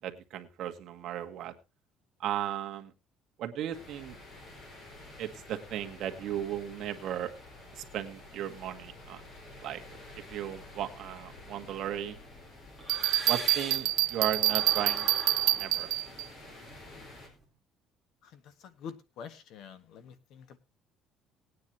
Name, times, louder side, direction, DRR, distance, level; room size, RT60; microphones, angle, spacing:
voice 1, 0.0-1.5 2.2-2.9 3.4-4.2 5.2-7.3 7.7-9.2 9.6-9.8 10.3-12.2 13.2-15.1 15.5-15.9, right 11 dB, 50° right, 6 dB, 1.6 m, -36 dB
sound 1, 3.7-17.3, left 2 dB, 35° left, 4.5 m, -50 dB
sound 2, 11.3-14.0 14.3-17.4, right 1 dB, 15° left, 4.8 m, -44 dB
Bell, 12.9-16.2, right 17 dB, 90° right, 0.7 m, -27 dB
voice 2, 18.6-20.6, left 7 dB, 60° left, 11 dB, 1.6 m, -46 dB
19.5 x 9.6 x 2.8 m, 0.26 s
cardioid pair, 165°, 0 cm